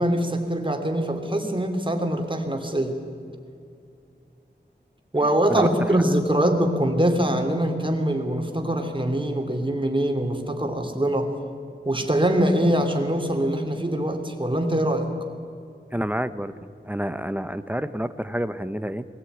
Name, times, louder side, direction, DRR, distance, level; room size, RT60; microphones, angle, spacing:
voice 1, 0.0-3.0 5.1-11.3 11.8-15.1, right 1 dB, 25° right, 4 dB, 3.0 m, -23 dB
voice 2, 5.5-6.0 15.9-16.5 16.8-19.1, equal, 10° right, 13 dB, 0.8 m, -28 dB
22.0 x 16.5 x 9.4 m, 2.5 s
wide cardioid pair, 70°, 19 cm